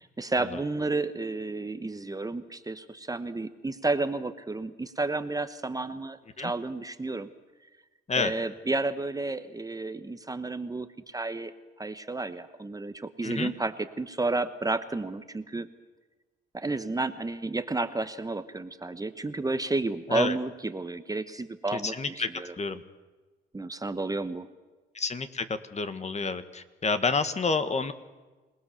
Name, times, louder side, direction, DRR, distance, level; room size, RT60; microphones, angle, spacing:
voice 1, 0.0-7.3 8.2-11.5 11.8-15.7 16.5-22.5 23.5-24.5, right 2 dB, 20° right, 11 dB, 1.1 m, -31 dB
voice 2, 21.7-22.3 22.5-22.8 24.9-25.4 25.7-27.9, left 4 dB, 35° left, 10 dB, 1.7 m, -29 dB
27.0 x 18.5 x 7.0 m, 1.2 s
cardioid pair, 90°, 20 cm